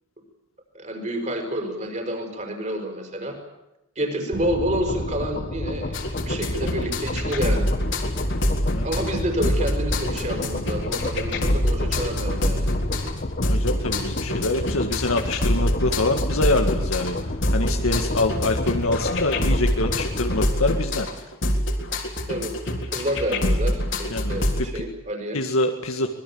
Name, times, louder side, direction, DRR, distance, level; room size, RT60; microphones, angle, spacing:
voice 1, 0.7-3.4 4.0-7.7 8.8-12.7 22.3-22.5 22.9-25.4, right 1 dB, 35° right, 5 dB, 5.6 m, -29 dB
sound 1, 4.3-20.5, left 1 dB, 40° left, 1.4 m, -30 dB
sound 2, 5.9-24.6, left 1 dB, 60° left, 3.8 m, -25 dB
voice 2, 13.5-21.1 24.1-24.9 25.3-26.1, left 2 dB, 85° left, 4 dB, 1.9 m, -25 dB
25.0 x 21.0 x 8.7 m, 0.92 s
head